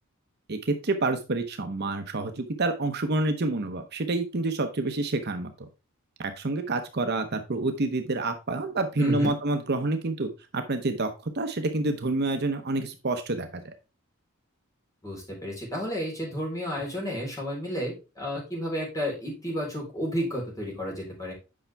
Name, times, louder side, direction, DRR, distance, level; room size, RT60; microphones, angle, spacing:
voice 1, 0.5-5.5 6.4-13.6, right 2 dB, 50° right, 7 dB, 0.8 m, -28 dB
voice 2, 9.0-9.3 15.0-21.3, equal, 15° left, -2 dB, 4.0 m, -31 dB
8.6 x 5.6 x 3.4 m, 0.30 s
head